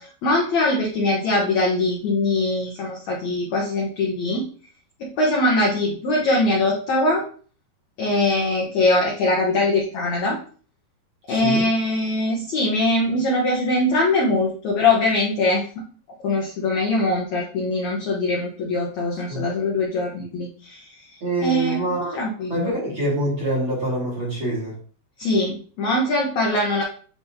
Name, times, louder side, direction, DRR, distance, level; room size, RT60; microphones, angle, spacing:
voice 1, 0.0-4.5 5.0-7.2 8.0-10.4 11.3-15.6 16.2-22.7 25.2-26.8, left 2 dB, 80° left, -1 dB, 1.6 m, -22 dB
voice 2, 11.3-11.7 19.3-19.4 21.2-22.2 22.5-24.8, right 1 dB, 40° right, -5 dB, 2.1 m, -25 dB
9.7 x 3.6 x 2.7 m, 0.42 s
omnidirectional pair, 4.7 m